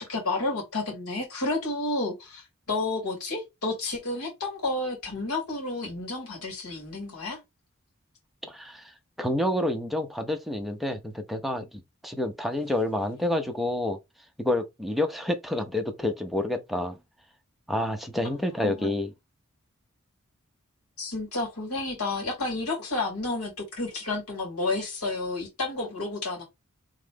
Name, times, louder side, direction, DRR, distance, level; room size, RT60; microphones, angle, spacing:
voice 1, 0.0-7.4 18.6-18.9 21.0-26.4, left 2 dB, 90° left, 2.6 m, -31 dB
voice 2, 8.4-14.0 14.4-17.0 17.7-19.1, left 1 dB, ahead, 0.6 m, -29 dB
3.6 x 3.1 x 3.7 m
head